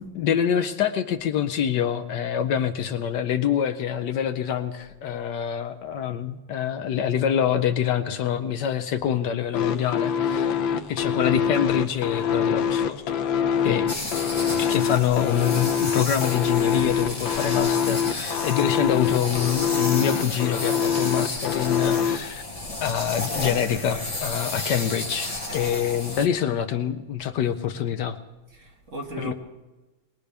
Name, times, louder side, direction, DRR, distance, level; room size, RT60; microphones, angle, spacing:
voice 1, 0.0-10.5 10.9-13.1 13.6-13.9 14.6-22.4 22.8-28.2 29.2-29.3, left 9 dB, 70° left, 1.2 m, -25 dB
sound 1, 9.5-22.2, left 7 dB, 85° left, 1.6 m, -24 dB
sound 2, 13.9-26.3, left 2 dB, 25° left, 0.8 m, -33 dB
voice 2, 28.5-29.3, right 2 dB, 40° right, 2.0 m, -38 dB
22.0 x 19.5 x 3.4 m
omnidirectional pair, 2.1 m